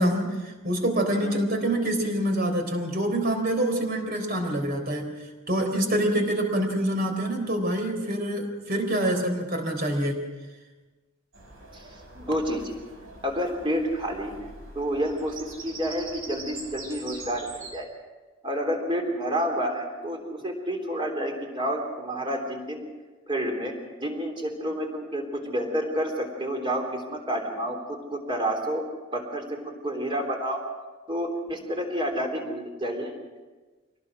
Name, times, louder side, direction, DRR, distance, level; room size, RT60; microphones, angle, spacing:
voice 1, 0.0-10.2, right 1 dB, 45° right, 4 dB, 3.9 m, -26 dB
Bird vocalization bird call bird song, 11.3-17.7, right 3 dB, 70° right, 5.7 m, -43 dB
voice 2, 11.7-12.7 13.2-14.5 14.8-17.9 18.4-22.9 23.3-23.7 24.0-28.8 29.1-30.6 31.1-33.1, equal, 25° right, 2 dB, 3.5 m, -29 dB
25.0 x 18.5 x 6.3 m, 1.3 s
head